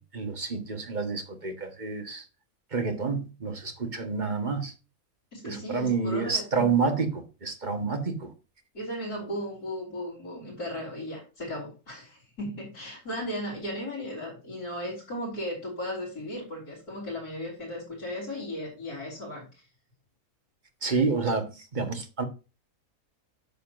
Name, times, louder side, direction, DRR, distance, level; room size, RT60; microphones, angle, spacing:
voice 1, 0.0-2.2 2.7-4.7 5.4-8.3 20.8-22.2, right 4 dB, 35° right, 1.4 m, -29 dB
voice 2, 5.3-6.8 8.7-19.5, equal, 85° left, 4.1 m, -36 dB
10.5 x 6.9 x 2.6 m
omnidirectional pair, 1.5 m